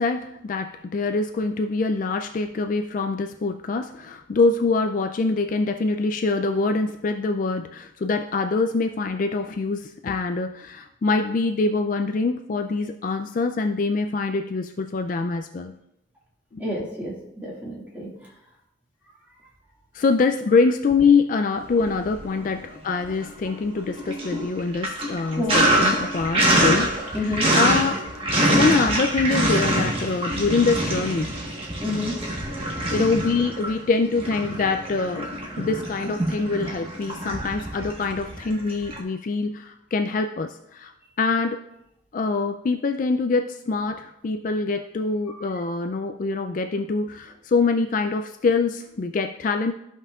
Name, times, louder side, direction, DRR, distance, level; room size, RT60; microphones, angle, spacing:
voice 1, 0.0-15.7 16.5-16.9 19.9-28.0 28.5-31.4 32.5-40.9 41.2-41.6 42.1-49.7, left 4 dB, 45° left, 7 dB, 0.3 m, -24 dB
voice 2, 16.6-18.1 25.4-25.6 27.1-27.5 31.8-32.2, left 2 dB, 10° right, -5 dB, 2.0 m, -29 dB
Sink (filling or washing), 21.7-22.5 22.9-39.0, right 1 dB, 30° right, 1.3 m, -25 dB
14.0 x 5.5 x 2.4 m, 0.82 s
head